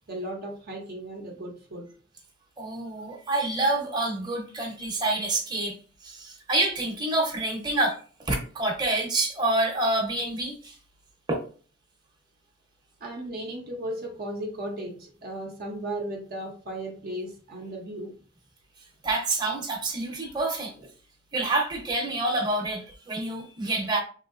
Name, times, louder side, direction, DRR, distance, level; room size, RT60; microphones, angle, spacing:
voice 1, 0.1-1.9 13.0-18.2, right 1 dB, 50° right, 0.6 m, -36 dB
voice 2, 2.6-10.8 11.3-11.4 19.0-20.7 21.3-24.0, right 2 dB, 20° right, 0.8 m, -27 dB
3.1 x 2.7 x 2.5 m
head